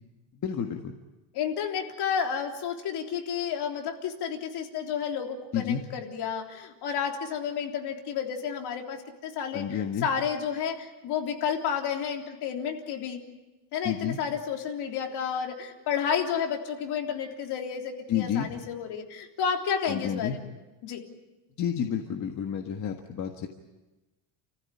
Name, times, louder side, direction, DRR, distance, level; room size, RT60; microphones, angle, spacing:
voice 1, 0.3-0.9 5.5-5.8 9.5-10.1 13.8-14.2 18.1-18.5 19.9-20.4 21.6-23.5, left 8 dB, 35° left, 3 dB, 1.6 m, -30 dB
voice 2, 1.3-13.2 13.7-20.5 20.8-21.0, left 7 dB, 55° left, 2 dB, 3.5 m, -31 dB
29.5 x 15.0 x 9.9 m, 1.1 s
cardioid pair, 155°, 48 cm